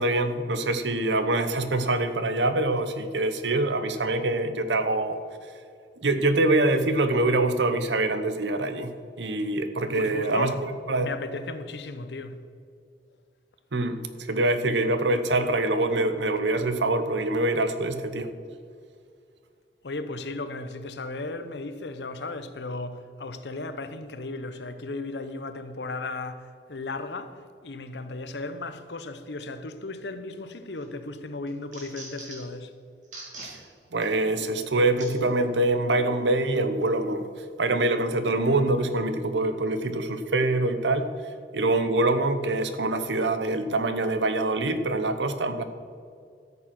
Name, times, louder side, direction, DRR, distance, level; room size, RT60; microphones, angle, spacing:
voice 1, 0.0-5.2 6.0-8.9 9.2-11.1 13.7-18.3 33.4-33.6 33.9-41.1 41.5-45.6, right 2 dB, 90° right, 0.9 m, -25 dB
voice 2, 9.9-10.6 11.0-12.4 19.8-32.7, left 2 dB, 80° left, 0.8 m, -35 dB
sound 1, 30.4-30.9 31.3-32.5 33.0-33.5 34.0-34.1 35.0-35.1 35.9-36.0, right 2 dB, 45° right, 3.3 m, -42 dB
13.5 x 7.0 x 6.0 m
head